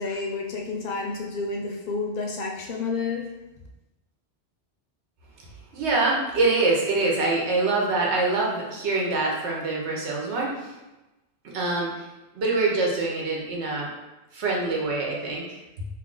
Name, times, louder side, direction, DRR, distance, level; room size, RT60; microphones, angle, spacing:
voice 1, 0.0-3.3, left 4 dB, 65° left, -1 dB, 0.7 m, -30 dB
voice 2, 5.7-10.7 11.5-12.1 12.3-13.9 14.3-15.6, right 3 dB, 85° right, -2 dB, 1.0 m, -25 dB
2.7 x 2.3 x 3.7 m, 1.0 s
omnidirectional pair, 1.1 m